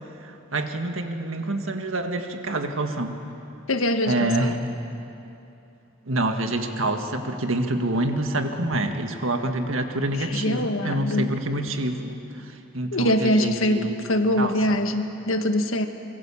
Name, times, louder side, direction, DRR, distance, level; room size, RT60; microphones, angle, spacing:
voice 1, 0.2-3.2 4.1-4.6 6.1-12.2 12.7-14.1 14.4-14.8, right 2 dB, 75° right, 5 dB, 1.8 m, -27 dB
voice 2, 3.7-4.5 10.1-11.3 12.9-15.9, left 1 dB, 80° left, 7 dB, 1.5 m, -23 dB
25.0 x 23.5 x 7.3 m, 2.8 s
head